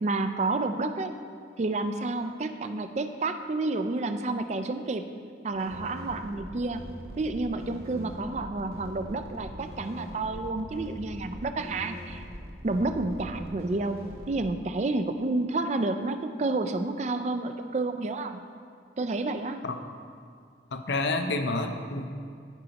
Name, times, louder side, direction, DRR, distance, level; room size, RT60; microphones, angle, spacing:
voice 1, 0.0-1.1 1.6-5.0 5.4-6.8 7.2-12.2 12.6-18.4 19.0-19.6, right 2 dB, 35° right, 8 dB, 0.3 m, -30 dB
sound 1, 5.5-14.4, equal, 55° right, 0.9 m, -42 dB
voice 2, 20.7-22.1, left 2 dB, 65° left, 6 dB, 0.6 m, -29 dB
14.5 x 5.2 x 2.9 m, 2.2 s
head